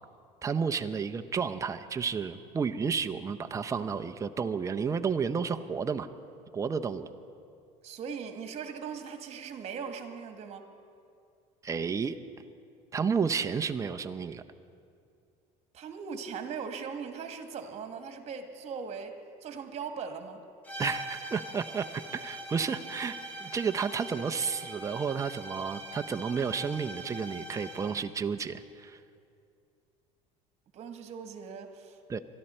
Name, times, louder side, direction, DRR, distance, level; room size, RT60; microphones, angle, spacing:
voice 1, 0.4-6.1 6.5-7.1 11.6-12.2 12.9-14.4 20.8-29.0 32.1-32.2, right 6 dB, 20° right, 8 dB, 0.6 m, -31 dB
voice 2, 7.8-10.6 15.7-19.1 19.4-20.4 30.7-32.0, right 6 dB, 45° right, 6 dB, 1.7 m, -39 dB
sound 1, 20.6-28.1, right 1 dB, 10° left, 2.5 m, -42 dB
24.0 x 12.5 x 4.4 m, 2.4 s
supercardioid pair, 115°, 15 cm